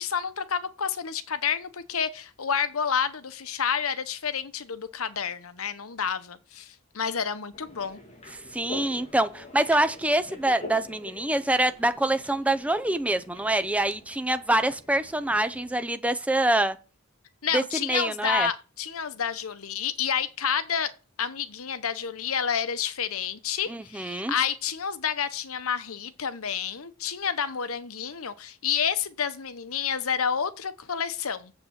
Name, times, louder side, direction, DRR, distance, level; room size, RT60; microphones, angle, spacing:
voice 1, 0.0-8.0 17.4-20.9 21.2-31.5, left 7 dB, 75° left, 0.9 m, -29 dB
sound 1, 7.5-15.8, left 2 dB, 30° left, 2.6 m, -45 dB
voice 2, 8.5-16.8 17.5-18.5 23.7-24.3, right 1 dB, 5° right, 0.7 m, -25 dB
7.4 x 6.6 x 7.4 m
head